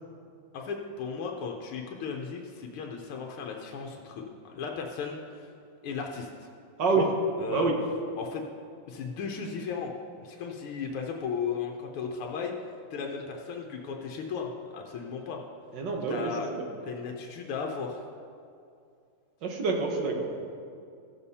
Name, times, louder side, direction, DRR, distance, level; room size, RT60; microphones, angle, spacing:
voice 1, 0.5-5.5 5.8-6.3 7.0-7.1 7.4-7.7 8.2-8.4 8.9-9.9 10.2-12.5 12.9-15.4 16.1-16.5 16.9-18.0, left 5 dB, 85° left, 1 dB, 1.7 m, -35 dB
voice 2, 15.7-16.7 19.4-20.3, right 4 dB, 60° right, 1 dB, 1.7 m, -27 dB
15.5 x 7.1 x 4.2 m, 2.4 s
omnidirectional pair, 2.3 m